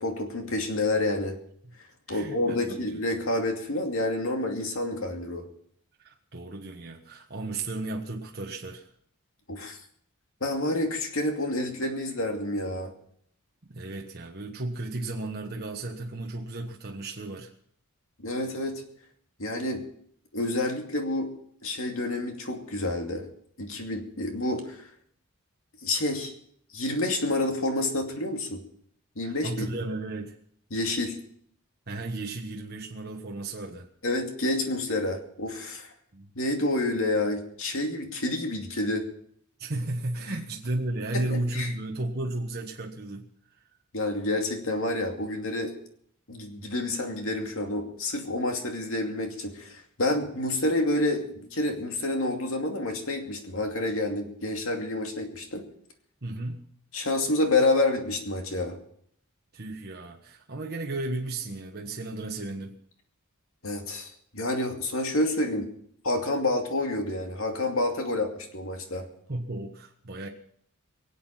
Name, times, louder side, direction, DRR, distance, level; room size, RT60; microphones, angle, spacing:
voice 1, 0.0-1.4 2.1-5.5 9.5-9.8 10.4-12.9 18.2-18.8 19.4-19.8 20.3-21.3 21.6-23.2 23.6-24.8 25.8-26.3 26.7-28.6 29.2-29.7 30.7-31.1 34.0-35.9 36.4-39.1 41.1-41.2 41.5-41.7 43.9-45.7 46.3-55.6 56.9-58.8 63.6-65.7 66.0-69.1, left 2 dB, 65° left, 3 dB, 2.5 m, -28 dB
voice 2, 2.1-3.0 6.0-8.9 13.7-17.5 29.2-30.3 31.9-33.9 36.1-36.3 39.6-43.3 56.2-56.7 59.5-62.7 69.3-70.3, right 2 dB, 45° right, 0 dB, 1.3 m, -34 dB
23.5 x 8.3 x 5.8 m, 0.66 s
head